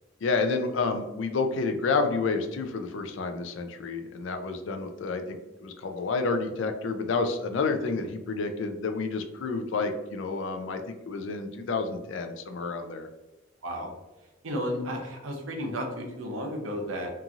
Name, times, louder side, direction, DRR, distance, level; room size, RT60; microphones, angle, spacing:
voice 1, 0.2-13.1, left 4 dB, 70° left, 6 dB, 0.4 m, -29 dB
voice 2, 14.4-17.1, equal, 85° right, 2 dB, 0.7 m, -33 dB
2.9 x 2.6 x 2.4 m, 1.1 s
head